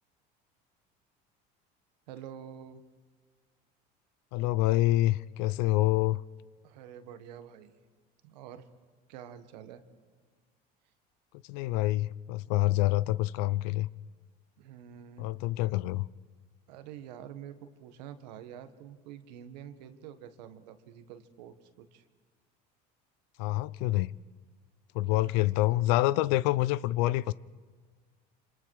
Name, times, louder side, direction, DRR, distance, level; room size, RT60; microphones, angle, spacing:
voice 1, 2.1-2.8 6.6-7.8 8.2-8.7 9.1-9.8 14.6-15.3 16.7-22.1 25.1-25.8, right 9 dB, 90° right, 1.7 m, -47 dB
voice 2, 4.3-6.2 11.4-13.9 15.2-16.1 23.4-24.1 24.9-27.3, left 17 dB, 80° left, 0.7 m, -27 dB
27.0 x 26.5 x 4.9 m
supercardioid pair, 95°, 21 cm